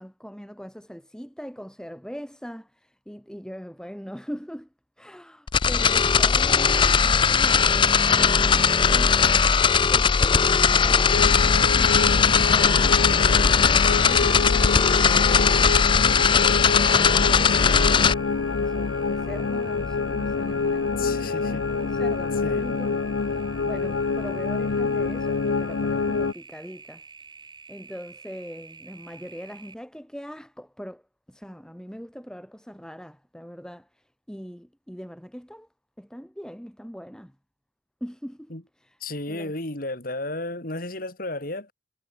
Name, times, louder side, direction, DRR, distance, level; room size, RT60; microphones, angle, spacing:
voice 1, 0.0-4.7 5.0-13.1 13.7-17.6 18.6-23.0 23.3-27.0 27.7-31.0 31.3-35.7 36.0-37.3 38.0-38.5 38.8-39.0 39.3-39.5, equal, 5° left, 6.6 m, -41 dB
sound 1, 5.5-18.1, left 6 dB, 25° left, 0.4 m, -19 dB
sound 2, 11.1-26.3, left 4 dB, 90° left, 0.7 m, -26 dB
sound 3, 17.5-29.7, right 4 dB, 25° right, 2.8 m, -47 dB
voice 2, 20.8-21.7 22.4-22.8 38.5-38.6 39.0-41.7, left 2 dB, 50° left, 3.1 m, -33 dB
head